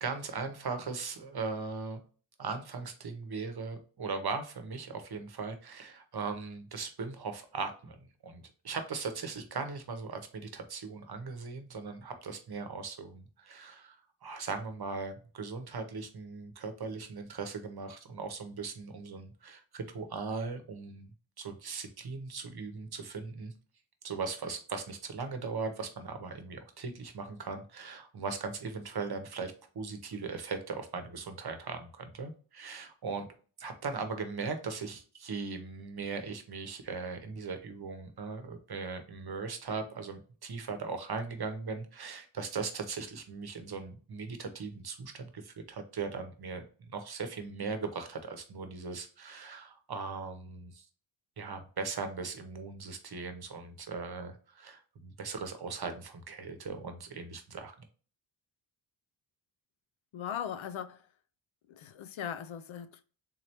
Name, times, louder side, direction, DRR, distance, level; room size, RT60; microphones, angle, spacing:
voice 1, 0.0-2.0 2.4-8.0 8.2-14.0 14.2-21.1 21.4-23.5 24.0-33.3 33.6-50.9 51.4-57.7, right 4 dB, 55° right, 0.8 m, -39 dB
voice 2, 60.1-61.0 61.7-63.0, left 9 dB, 80° left, 0.5 m, -39 dB
3.7 x 3.1 x 2.9 m
wide cardioid pair, 100°, 47 cm